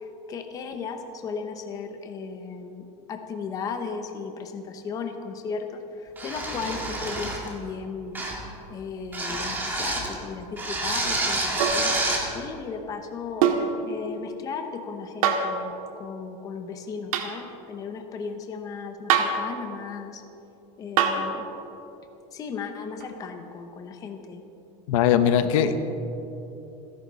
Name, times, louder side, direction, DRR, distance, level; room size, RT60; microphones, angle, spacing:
voice 1, 0.0-8.2 8.7-20.2 20.8-21.5 22.3-24.4 25.4-25.6, left 5 dB, 20° left, 5 dB, 0.9 m, -36 dB
sound 1, 6.2-7.5 8.1-8.5 9.1-10.1 10.6-12.3, right 2 dB, 10° right, 2.0 m, -28 dB
sound 2, 11.6-11.9 13.4-13.7 15.2-15.5 17.1-17.3 19.1-19.5 21.0-21.3 23.0-23.1, right 7 dB, 85° right, 1.8 m, -23 dB
voice 2, 24.9-25.8, left 9 dB, 70° left, 9 dB, 1.1 m, -20 dB
28.5 x 11.0 x 4.1 m, 2.9 s
supercardioid pair, 180°, 18 cm